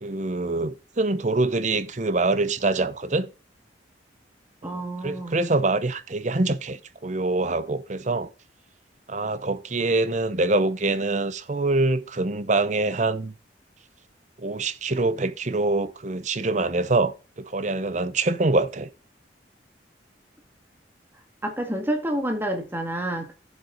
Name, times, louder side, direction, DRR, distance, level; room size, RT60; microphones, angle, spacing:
voice 1, 0.0-3.3 4.6-8.3 9.1-13.3 14.4-18.9, right 2 dB, 40° right, 0.7 m, -25 dB
voice 2, 4.6-5.4 21.4-23.3, right 1 dB, 10° right, 2.0 m, -28 dB
12.0 x 7.3 x 4.0 m
head